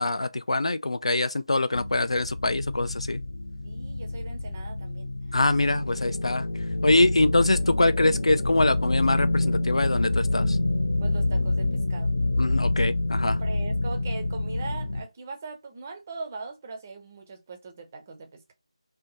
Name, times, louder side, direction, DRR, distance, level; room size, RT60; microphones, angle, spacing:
voice 1, 0.0-3.2 5.3-6.5 6.8-10.6 12.4-13.4, left 2 dB, 75° left, 0.4 m, -24 dB
sound 1, 1.7-15.0, left 2 dB, 55° left, 0.8 m, -27 dB
voice 2, 3.6-5.6 11.0-12.1 13.2-18.5, right 4 dB, 20° right, 0.5 m, -40 dB
2.7 x 2.2 x 2.6 m
figure-of-eight pair, 165°, 3 cm